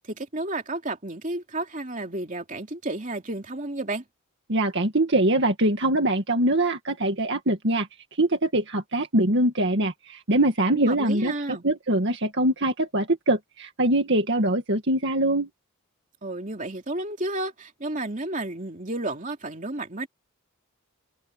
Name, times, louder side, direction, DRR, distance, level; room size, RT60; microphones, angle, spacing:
voice 1, 0.1-4.0 10.7-11.6 16.2-20.1, right 2 dB, 35° right, 3.0 m, -32 dB
voice 2, 4.5-15.5, right 1 dB, 50° right, 2.1 m, -23 dB
head